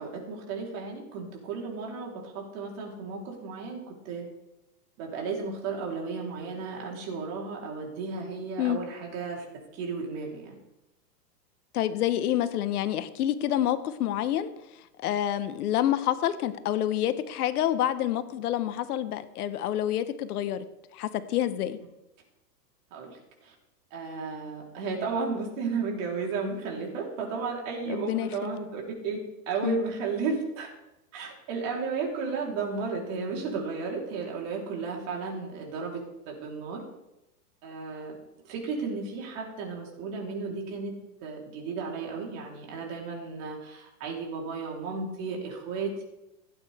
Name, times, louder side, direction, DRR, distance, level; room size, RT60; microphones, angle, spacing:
voice 1, 0.0-4.3 5.0-9.5 9.7-10.6 22.9-23.5 23.9-30.7 31.1-36.8 37.6-38.2 38.4-46.0, right 4 dB, 45° right, -1 dB, 3.9 m, -34 dB
voice 2, 11.7-14.5 15.0-20.6 20.9-21.8 27.9-28.5 29.6-29.8, left 11 dB, 65° left, 12 dB, 1.1 m, -28 dB
16.5 x 8.8 x 3.5 m, 0.92 s
hypercardioid pair, 135°, 50 cm